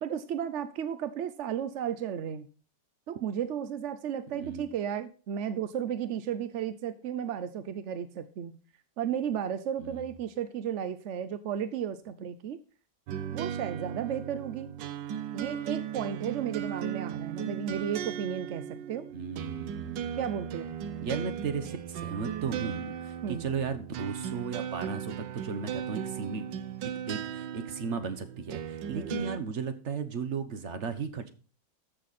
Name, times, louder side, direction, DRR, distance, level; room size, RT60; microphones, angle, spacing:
voice 1, 0.0-2.5 3.1-8.6 9.0-12.6 13.3-14.7 15.3-19.1 20.2-20.8 23.2-23.5 28.9-29.1, right 8 dB, 65° right, 12 dB, 0.7 m, -34 dB
voice 2, 4.3-4.7 9.8-10.1 19.1-20.2 21.0-26.5 26.8-31.3, right 5 dB, 45° right, 10 dB, 1.2 m, -35 dB
sound 1, 13.1-29.4, right 9 dB, 90° right, 1.4 m, -37 dB
13.5 x 6.7 x 4.1 m, 0.38 s
omnidirectional pair, 1.9 m